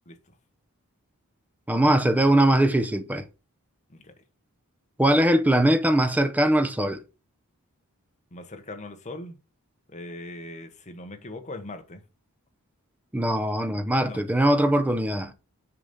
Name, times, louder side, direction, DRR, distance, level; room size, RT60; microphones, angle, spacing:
voice 1, 1.7-3.2 5.0-7.0 13.1-15.3, right 1 dB, 5° right, 0.7 m, -21 dB
voice 2, 3.9-4.2 8.3-9.4 9.9-12.0 14.1-14.2, left 2 dB, 35° left, 1.2 m, -40 dB
6.8 x 4.2 x 5.3 m
head